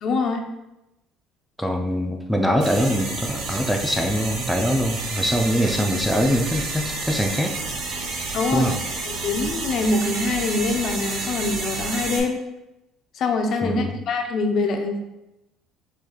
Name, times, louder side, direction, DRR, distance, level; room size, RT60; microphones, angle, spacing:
voice 1, 0.0-0.4 8.3-8.7 9.1-12.4 13.1-15.0, left 3 dB, 55° left, 5 dB, 0.6 m, -24 dB
voice 2, 1.6-7.5 8.5-8.8 13.6-14.0, equal, ahead, 2 dB, 0.6 m, -23 dB
sound 1, 2.6-12.2, right 3 dB, 65° right, 1.1 m, -30 dB
6.3 x 3.3 x 2.4 m, 0.93 s
supercardioid pair, 95°, 0 cm